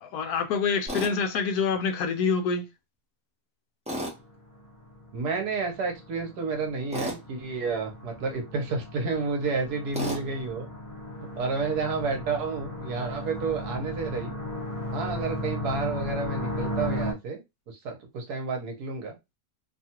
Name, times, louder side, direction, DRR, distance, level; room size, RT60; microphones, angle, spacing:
voice 1, 0.0-2.6, left 5 dB, 75° left, 1.0 m, -26 dB
Tools, 0.9-1.1 3.9-4.2 6.9-7.2 9.9-10.2, equal, 5° right, 0.7 m, -32 dB
sound 1, 4.1-17.1, equal, 20° left, 1.0 m, -36 dB
voice 2, 5.1-10.7 11.4-14.3 14.9-17.4 17.7-19.2, right 4 dB, 75° right, 1.4 m, -30 dB
3.0 x 2.3 x 2.8 m
omnidirectional pair, 1.7 m